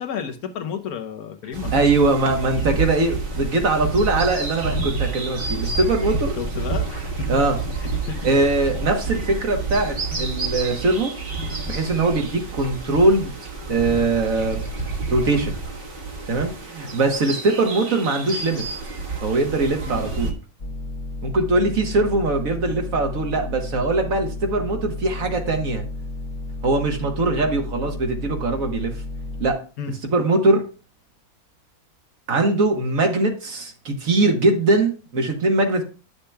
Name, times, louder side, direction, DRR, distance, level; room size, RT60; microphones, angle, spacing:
voice 1, 0.0-1.8 6.4-7.3 7.8-8.2 19.9-20.0 29.8-29.9, left 7 dB, 80° left, 1.3 m, -32 dB
sound 1, 1.5-20.3, right 3 dB, 40° right, 1.3 m, -29 dB
voice 2, 1.7-6.3 7.3-7.6 8.2-11.1 11.7-13.3 13.7-14.6 15.1-15.5 16.3-18.6 19.2-20.3 21.2-25.8 26.6-28.9 29.4-29.6 30.0-30.6 32.3-35.8, right 2 dB, 70° right, 1.6 m, -21 dB
sound 2, 20.6-29.5, left 2 dB, 50° left, 1.3 m, -32 dB
10.0 x 6.6 x 2.3 m
omnidirectional pair, 1.5 m